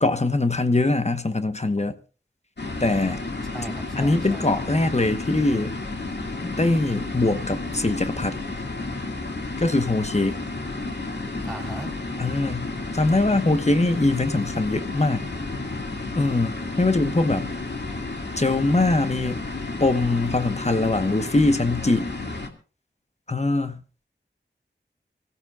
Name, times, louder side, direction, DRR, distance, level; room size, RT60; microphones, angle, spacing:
voice 1, 0.0-1.9 2.8-3.2 4.0-5.8 6.4-8.4 9.6-10.3 12.2-15.3 16.2-17.5 18.4-19.4 19.8-22.1 23.3-23.8, left 2 dB, 35° left, 1.1 m, -22 dB
sound 1, 2.6-22.5, left 2 dB, 65° left, 2.1 m, -32 dB
voice 2, 3.4-4.5 11.4-11.9, right 1 dB, ahead, 3.9 m, -37 dB
25.0 x 15.5 x 2.4 m
wide cardioid pair, 45°, 19 cm